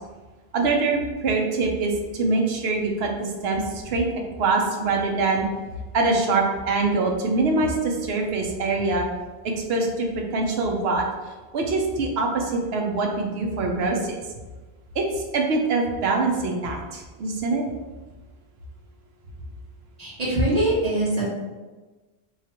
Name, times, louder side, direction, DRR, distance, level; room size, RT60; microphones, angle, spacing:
voice 1, 0.5-4.1 4.4-5.5 5.9-9.1 9.7-10.1 10.3-11.1 11.5-14.2 14.9-17.6, right 3 dB, 75° right, 2 dB, 0.9 m, -24 dB
voice 2, 20.0-21.3, right 1 dB, 40° right, -9 dB, 1.6 m, -22 dB
3.1 x 2.4 x 4.3 m, 1.3 s
omnidirectional pair, 1.1 m